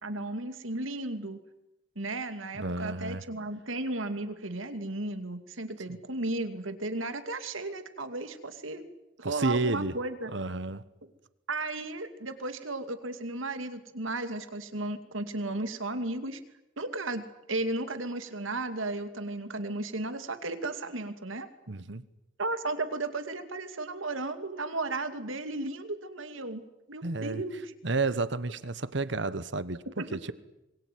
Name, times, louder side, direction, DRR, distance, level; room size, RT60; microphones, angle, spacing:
voice 1, 0.0-1.4 2.0-8.8 9.2-10.3 11.5-16.4 16.8-21.5 22.4-26.6 26.9-27.7 30.0-30.1, right 2 dB, 85° right, 9 dB, 2.5 m, -34 dB
voice 2, 2.5-3.3 5.9-6.0 9.2-9.9 10.3-10.8 21.7-22.0 27.0-27.4 27.8-30.3, right 3 dB, 65° right, 16 dB, 1.2 m, -31 dB
26.0 x 22.5 x 9.4 m, 0.92 s
head